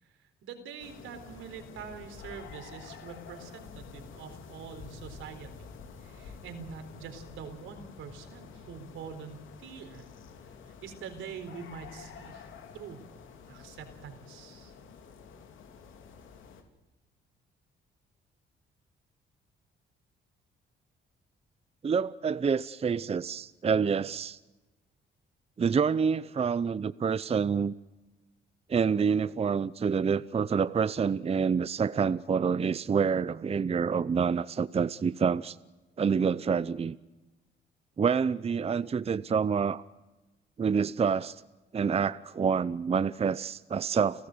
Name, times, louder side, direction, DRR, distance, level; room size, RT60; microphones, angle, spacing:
voice 1, 0.0-5.5 6.0-10.1 10.6-12.5 12.7-13.0 13.5-14.7, right 6 dB, 85° right, 4.1 m, -45 dB
sound 1, 0.8-16.6, left 5 dB, 85° left, 3.2 m, -49 dB
voice 2, 21.8-24.4 25.6-27.7 28.7-35.6 36.0-37.0 38.0-39.8 40.6-41.4 41.7-44.3, right 6 dB, 30° right, 0.6 m, -27 dB
30.0 x 15.0 x 7.9 m
cardioid pair, 90°, 20 cm